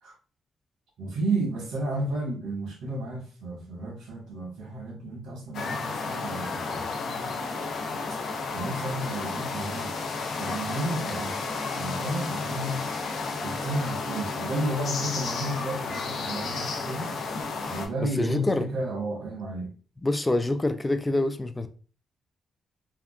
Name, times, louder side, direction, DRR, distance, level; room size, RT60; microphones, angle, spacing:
voice 1, 1.0-6.9 8.5-10.0 10.4-11.4 11.7-12.8 13.4-17.1 17.7-19.7, right 2 dB, 85° right, -2 dB, 1.4 m, -32 dB
sound 1, 5.5-17.9, left 4 dB, 70° left, 0.6 m, -32 dB
voice 2, 18.0-18.7 20.0-21.7, left 2 dB, 15° left, 9 dB, 0.3 m, -26 dB
3.6 x 2.2 x 2.4 m, 0.38 s
cardioid pair, 100°, 0 cm